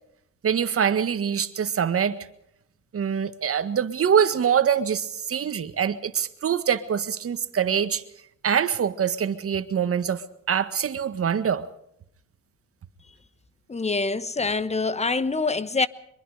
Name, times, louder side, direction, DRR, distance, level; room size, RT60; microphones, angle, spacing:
voice 1, 0.4-2.2 2.9-8.0 8.4-11.7, right 8 dB, 50° right, 1.7 m, -24 dB
voice 2, 13.7-15.9, left 3 dB, 20° left, 1.1 m, -25 dB
24.0 x 22.5 x 5.0 m
cardioid pair, 90°, 30 cm